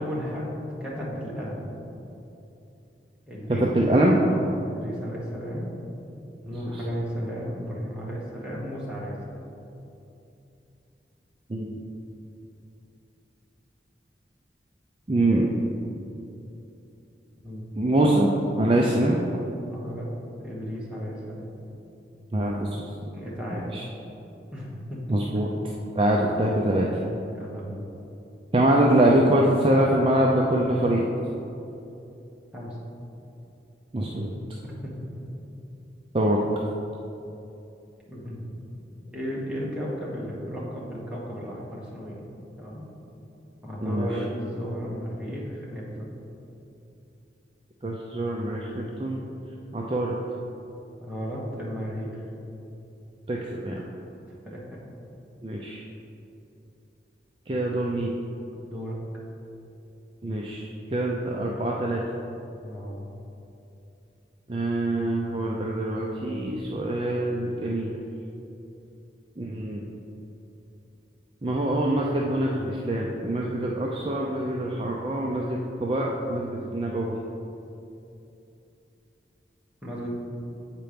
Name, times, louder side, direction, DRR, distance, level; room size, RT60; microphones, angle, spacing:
voice 1, 0.0-1.7 3.3-3.9 4.3-5.7 6.4-9.2 17.4-17.8 19.7-20.1 20.4-21.5 23.1-23.7 24.5-25.0 27.3-27.8 32.5-32.8 34.6-34.9 38.1-38.5 39.1-42.3 42.6-42.9 43.6-46.1 51.0-52.2 54.4-54.9 58.6-59.0 62.6-63.1 79.8-80.1, equal, 5° right, -6 dB, 1.3 m, -34 dB
voice 2, 3.6-4.2 11.5-11.8 15.1-15.5 17.8-19.2 22.3-22.8 23.5-23.8 25.1-25.5 26.0-27.0 28.5-31.0 33.9-34.3 36.1-36.4 43.8-44.1 47.8-49.2 49.7-50.1 53.3-53.8 55.4-55.8 57.5-58.1 60.2-62.0 64.5-68.0 69.4-69.8 71.4-77.1, right 1 dB, 30° right, -2 dB, 0.5 m, -24 dB
8.0 x 4.4 x 5.1 m, 2.8 s
head